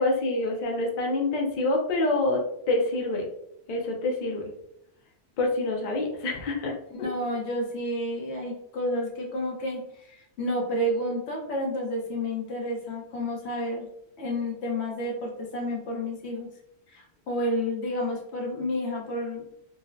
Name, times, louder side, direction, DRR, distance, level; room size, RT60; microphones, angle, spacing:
voice 1, 0.0-2.4 2.7-3.2 3.7-4.4 5.4-6.7, left 2 dB, 55° left, 0 dB, 0.6 m, -26 dB
voice 2, 7.0-13.9 14.2-16.5 16.9-19.4, left 1 dB, 80° left, 0 dB, 1.0 m, -30 dB
3.8 x 2.0 x 2.5 m, 0.79 s
omnidirectional pair, 1.1 m